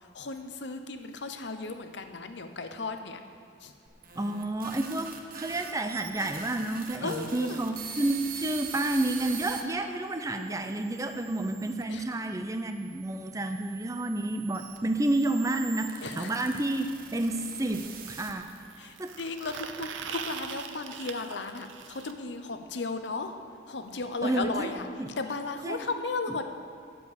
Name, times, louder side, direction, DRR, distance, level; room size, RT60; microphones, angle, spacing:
voice 1, 0.1-3.2 3.6-3.7 7.0-7.6 11.9-12.1 16.0-16.3 18.8-23.4 23.7-24.9 25.2-26.4, left 3 dB, 65° left, 7 dB, 0.8 m, -35 dB
sound 1, 3.9-9.6 10.3-11.8 12.6-18.6, right 7 dB, 50° right, 1.0 m, -43 dB
voice 2, 4.2-18.5 19.0-19.1 24.2-24.7 25.0-25.1 25.6-25.8, right 2 dB, 15° right, 6 dB, 0.5 m, -30 dB
sound 2, 18.3-22.1 24.0-24.1 24.4-24.5 24.8-24.9 25.8-25.9, right 7 dB, 85° right, 0.7 m, -41 dB
12.0 x 5.2 x 8.1 m, 2.4 s
head